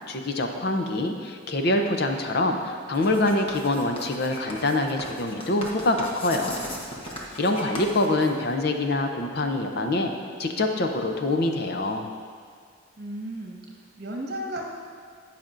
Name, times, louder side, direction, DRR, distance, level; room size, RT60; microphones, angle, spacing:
voice 1, 0.1-6.6 7.4-10.1 10.4-12.1, left 2 dB, 50° left, 4 dB, 0.6 m, -25 dB
Writing, 2.9-8.8, left 1 dB, 30° left, 1.1 m, -38 dB
voice 2, 13.0-14.7, right 1 dB, 50° right, -1 dB, 1.3 m, -35 dB
17.5 x 5.9 x 2.6 m, 2.1 s
head